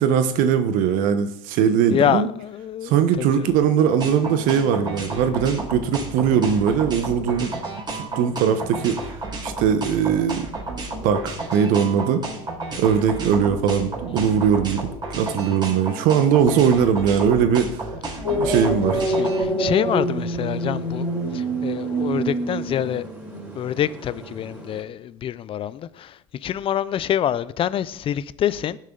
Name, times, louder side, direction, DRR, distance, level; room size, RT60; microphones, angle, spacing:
voice 1, 0.0-2.3 2.8-7.5 7.9-9.1 9.4-10.5 11.0-12.2 12.8-14.9 15.2-17.9 18.3-19.0, right 8 dB, 65° right, 1.2 m, -20 dB
voice 2, 1.9-2.9 3.2-3.5 14.2-14.3 18.6-21.1 21.3-23.0 23.5-28.8, left 10 dB, 35° left, 0.6 m, -26 dB
sound 1, 4.0-19.4, right 2 dB, 30° right, 5.3 m, -31 dB
sound 2, 18.2-24.8, right 1 dB, 10° right, 5.8 m, -26 dB
19.5 x 7.5 x 4.0 m
supercardioid pair, 100°, 15 cm